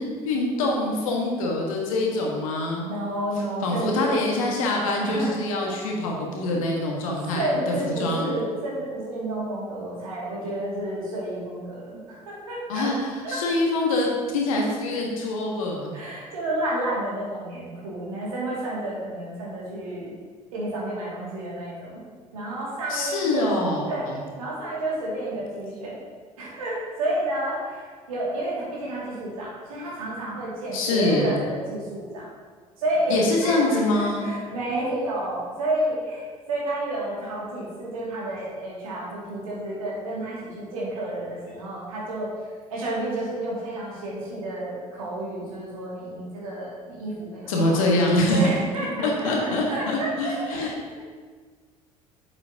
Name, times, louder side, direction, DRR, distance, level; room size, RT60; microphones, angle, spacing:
voice 1, 0.0-2.9 3.6-7.5 7.8-8.3 12.7-14.1 14.3-15.9 22.9-24.2 30.7-31.3 33.1-34.3 47.5-48.5 49.0-50.7, left 2 dB, 70° left, -1 dB, 1.4 m, -24 dB
voice 2, 2.9-4.4 5.0-5.7 7.3-12.9 13.2-13.4 15.9-20.1 20.5-22.0 22.3-24.0 24.4-26.0 26.4-32.3 32.8-42.3 42.7-47.8 48.3-50.9, right 1 dB, 70° right, -5 dB, 2.2 m, -30 dB
7.7 x 7.2 x 2.8 m, 1.5 s
figure-of-eight pair, 60°, 18 cm